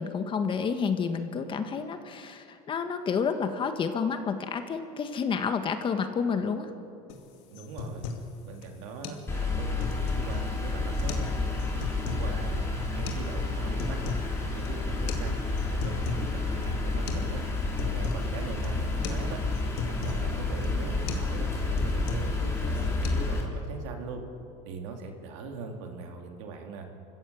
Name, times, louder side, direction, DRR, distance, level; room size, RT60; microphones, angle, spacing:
voice 1, 0.0-6.7, left 6 dB, 35° left, 8 dB, 1.7 m, -30 dB
sound 1, 7.1-7.2 7.6-8.3 8.6-8.7 9.0-9.2 9.6-10.4 10.9-11.3 11.6-12.3 13.1-13.2 13.6-14.3 14.6-14.7 15.1-15.3 15.6-16.3 16.6-16.7 17.1-17.3 17.6-18.3 18.6-18.8 19.0-19.2 19.5-20.2 20.6-20.8 21.1-21.3 21.6-22.4 22.7-23.1, left 5 dB, 75° left, 2.6 m, -37 dB
voice 2, 7.5-8.1 8.4-15.4 15.7-17.4 17.8-19.4 19.9-24.2 24.7-26.9, right 4 dB, 80° right, 3 dB, 3.1 m, -41 dB
sound 2, 9.3-23.4, left 3 dB, 15° left, 4.3 m, -30 dB
25.5 x 15.5 x 7.2 m, 2.5 s
supercardioid pair, 115°, 15 cm